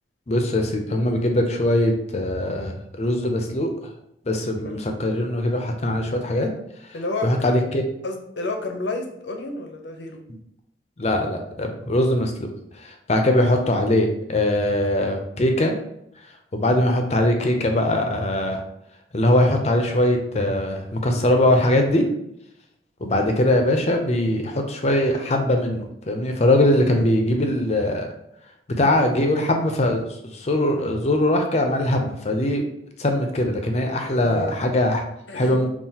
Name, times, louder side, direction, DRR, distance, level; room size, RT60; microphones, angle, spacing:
voice 1, 0.3-3.9 4.2-6.5 7.2-7.8 11.0-12.5 12.8-15.7 16.5-18.6 19.1-22.1 23.0-28.1 28.7-32.6 33.0-35.0 35.3-35.7, left 1 dB, 40° left, 4 dB, 0.6 m, -21 dB
voice 2, 6.9-7.3 8.0-10.2 13.3-13.5 26.8-27.1 30.7-30.9 34.0-34.6 35.3-35.6, left 2 dB, 80° left, 4 dB, 0.7 m, -31 dB
5.6 x 2.4 x 2.8 m, 0.77 s
head